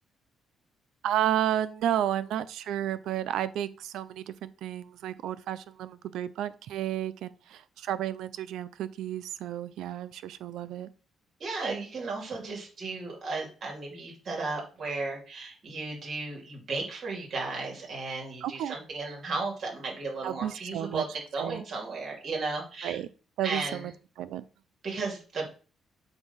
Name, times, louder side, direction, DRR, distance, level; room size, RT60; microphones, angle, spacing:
voice 1, 1.0-10.9 18.4-18.7 20.2-21.0 21.4-21.6 22.8-23.1 23.4-23.9 24.2-24.4, right 11 dB, 85° right, 15 dB, 0.5 m, -32 dB
voice 2, 11.4-23.0 23.4-23.9 24.8-25.5, right 3 dB, 55° right, -1 dB, 2.5 m, -34 dB
7.9 x 2.7 x 5.6 m, 0.37 s
cardioid pair, 90°, 0 cm